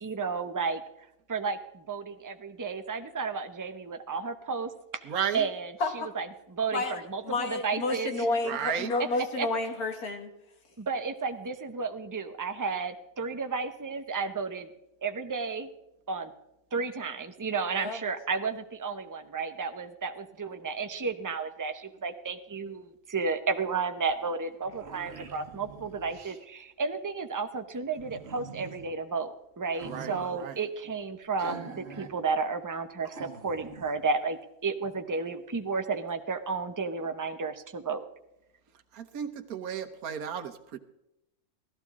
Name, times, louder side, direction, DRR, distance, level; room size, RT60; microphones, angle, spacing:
voice 1, 0.0-0.8 1.3-5.0 5.3-8.3 9.4-9.5 10.8-14.7 15.0-15.7 16.1-16.3 16.7-38.0, right 4 dB, 25° right, 8 dB, 0.4 m, -32 dB
voice 2, 5.0-5.5 8.4-8.9 29.9-30.6 38.9-40.8, right 8 dB, 80° right, 8 dB, 1.5 m, -34 dB
voice 3, 5.8-6.1 6.7-10.3 17.7-18.0, left 3 dB, 85° left, 5 dB, 2.0 m, -30 dB
sound 1, 24.1-24.2 24.4-26.5 28.0-28.9 29.7-30.4 31.4-32.1 32.5-32.6 33.0-34.0, right 4 dB, 50° right, 1.2 m, -44 dB
16.5 x 14.0 x 3.6 m, 0.87 s
omnidirectional pair, 1.5 m